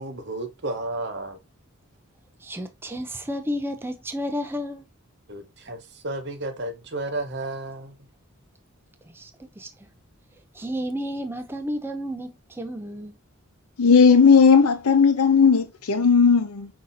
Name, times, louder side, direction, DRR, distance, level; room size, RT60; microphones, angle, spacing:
voice 1, 0.0-1.4 5.3-8.0, right 2 dB, 50° right, 0.7 m, -32 dB
voice 2, 2.4-4.9 9.1-9.3 9.6-9.9 10.5-13.1, equal, 10° right, 0.3 m, -32 dB
voice 3, 13.8-16.7, left 5 dB, 85° left, 0.7 m, -16 dB
5.4 x 2.7 x 2.5 m
head